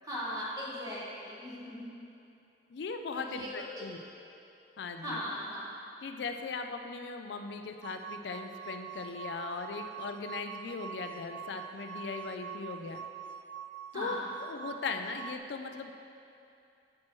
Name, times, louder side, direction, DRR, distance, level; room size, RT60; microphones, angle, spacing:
voice 1, 0.0-1.9 3.1-4.3 5.0-5.8 13.9-14.3, left 1 dB, 20° right, -7 dB, 1.3 m, -39 dB
voice 2, 2.7-4.0 4.8-5.2 6.0-13.0 13.9-15.9, left 4 dB, 70° left, 6 dB, 0.4 m, -39 dB
sound 1, 7.8-15.4, right 9 dB, 70° right, 0.3 m, -44 dB
8.8 x 7.4 x 3.1 m, 2.7 s
head